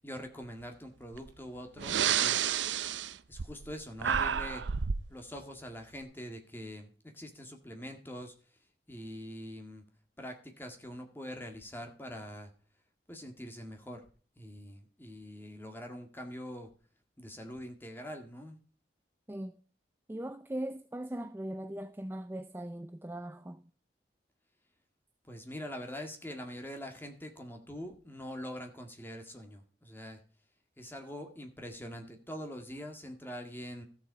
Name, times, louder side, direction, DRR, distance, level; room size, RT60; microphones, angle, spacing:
voice 1, 0.0-2.5 3.3-4.6 5.1-6.9 7.1-8.3 8.9-9.8 10.2-12.5 13.1-14.0 14.4-16.7 17.2-18.6 25.3-30.2 30.8-33.8, equal, 10° left, 1.8 m, -44 dB
Breathing, 1.1-1.3 1.8-3.7 4.0-5.1, right 8 dB, 90° right, 0.6 m, -30 dB
voice 2, 19.3-19.6 20.1-23.6, right 1 dB, 10° right, 0.4 m, -39 dB
14.0 x 6.9 x 4.7 m
head